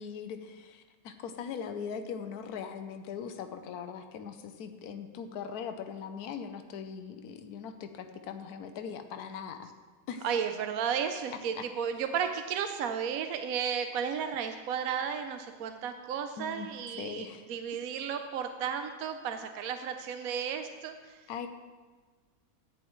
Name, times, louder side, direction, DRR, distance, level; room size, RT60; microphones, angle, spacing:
voice 1, 0.0-9.7 10.1-10.2 11.3-11.6 16.4-17.5 21.3-21.5, left 7 dB, 80° left, 7 dB, 1.2 m, -40 dB
voice 2, 10.2-21.2, right 7 dB, 70° right, 7 dB, 1.0 m, -33 dB
14.0 x 10.0 x 3.1 m, 1.4 s
omnidirectional pair, 1.6 m